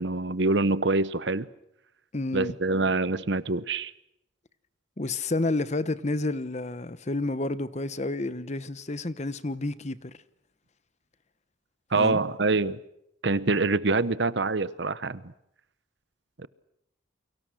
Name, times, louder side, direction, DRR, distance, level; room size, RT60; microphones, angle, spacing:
voice 1, 0.0-1.5 2.3-3.9 11.9-12.8 13.2-15.2 16.4-16.5, right 3 dB, 60° right, 1.0 m, -25 dB
voice 2, 2.1-2.6 5.0-10.1 11.9-12.2, left 2 dB, 35° left, 1.0 m, -30 dB
30.0 x 24.0 x 6.3 m
head